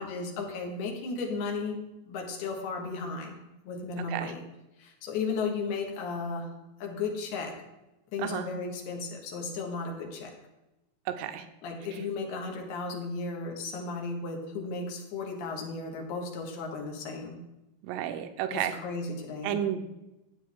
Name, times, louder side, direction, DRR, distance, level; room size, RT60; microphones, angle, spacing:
voice 1, 0.0-1.8 2.0-3.4 3.6-4.4 4.8-6.5 6.8-7.5 8.1-10.3 11.6-17.4 18.5-19.6, left 4 dB, 65° left, 1 dB, 3.1 m, -35 dB
voice 2, 11.1-11.5 17.8-18.7 19.4-19.9, right 10 dB, 90° right, 8 dB, 3.2 m, -31 dB
12.5 x 8.4 x 3.6 m, 0.98 s
omnidirectional pair, 5.8 m